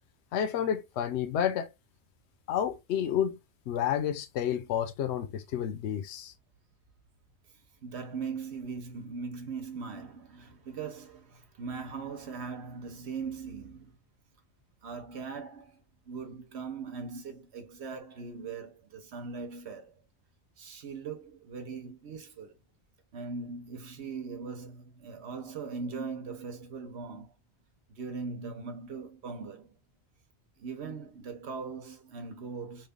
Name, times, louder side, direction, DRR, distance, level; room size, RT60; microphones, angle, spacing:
voice 1, 0.3-1.7 2.5-3.4 3.7-6.3, left 9 dB, 80° left, 0.8 m, -30 dB
voice 2, 7.8-14.0 14.8-19.9 20.6-22.6 23.1-27.3 27.9-29.8 30.6-32.9, right 5 dB, 75° right, 1.1 m, -40 dB
3.2 x 2.3 x 3.5 m
omnidirectional pair, 1.1 m